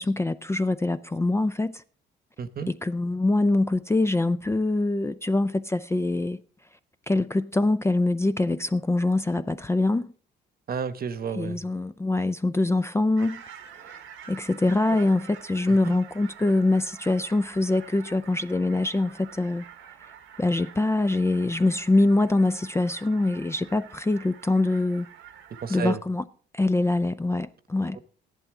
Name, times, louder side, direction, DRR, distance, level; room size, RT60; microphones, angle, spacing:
voice 1, 0.0-1.8 2.7-6.4 7.1-10.1 11.4-13.4 13.8-13.9 14.3-19.6 20.4-25.1 25.7-26.2 26.5-28.0, left 2 dB, 15° left, 0.4 m, -24 dB
voice 2, 2.4-2.7 10.7-11.6 14.9-15.0 15.7-16.0 25.6-26.0, right 6 dB, 50° right, 1.1 m, -31 dB
sound 1, 13.2-25.9, right 8 dB, 85° right, 1.3 m, -47 dB
13.5 x 11.0 x 3.7 m
cardioid pair, 90°, 20 cm